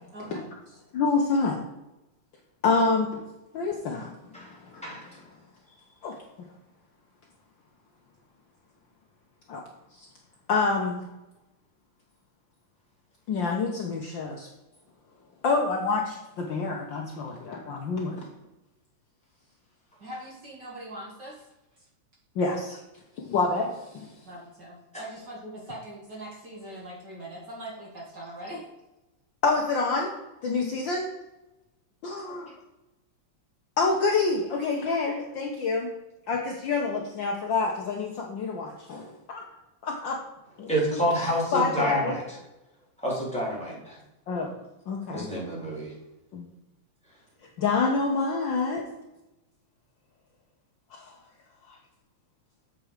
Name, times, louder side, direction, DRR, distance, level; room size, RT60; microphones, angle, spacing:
voice 1, 0.1-0.8 20.0-21.5 21.7-21.8 24.2-28.7, right 1 dB, 40° right, -4 dB, 2.2 m, -41 dB
voice 2, 0.9-1.6 2.6-3.2 3.5-4.1 4.7-4.8 6.0-6.1 9.5-9.6 10.0-10.1 10.5-11.0 13.3-14.5 15.4-18.3 22.4-22.8 23.2-24.1 29.4-30.1 30.4-31.1 32.0-32.5 33.8-35.9 36.3-39.4 39.8-40.2 40.6-40.7 41.5-42.1 44.3-44.5 44.9-45.3 46.3-46.5 47.6-48.9 50.9-51.1, left 4 dB, 80° left, 0 dB, 1.0 m, -27 dB
voice 3, 4.8-5.1 24.9-25.0 40.7-42.4 43.0-44.0 45.1-45.9, equal, ahead, -4 dB, 2.6 m, -28 dB
7.8 x 6.0 x 5.0 m, 0.99 s
omnidirectional pair, 3.3 m